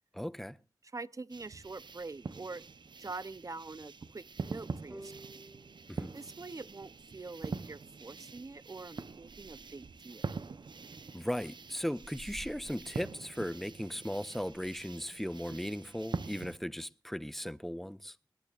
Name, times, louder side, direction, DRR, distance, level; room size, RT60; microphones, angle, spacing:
voice 1, 0.1-0.6 5.9-6.1 11.1-18.2, equal, 5° left, 0.6 m, -37 dB
voice 2, 0.8-2.6 3.0-5.2 6.1-10.3, right 3 dB, 45° right, 0.7 m, -45 dB
sound 1, 1.3-16.6, right 4 dB, 80° right, 0.8 m, -44 dB
sound 2, 4.9-8.2, right 1 dB, 25° right, 3.8 m, -55 dB
20.5 x 18.5 x 2.4 m
wide cardioid pair, 65°, 8 cm